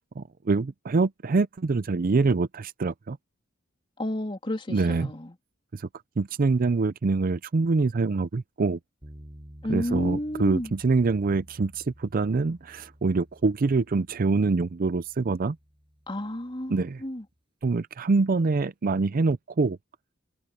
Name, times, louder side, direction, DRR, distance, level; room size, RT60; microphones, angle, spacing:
voice 1, 0.0-3.2 4.7-5.1 6.2-8.8 9.7-15.6 16.7-17.0 17.6-19.8, right 3 dB, 45° right, 0.5 m, -25 dB
voice 2, 4.0-5.3 9.6-10.7 16.1-17.2, left 1 dB, 25° left, 3.1 m, -31 dB
sound 1, 9.0-17.2, equal, 25° right, 6.4 m, -51 dB
head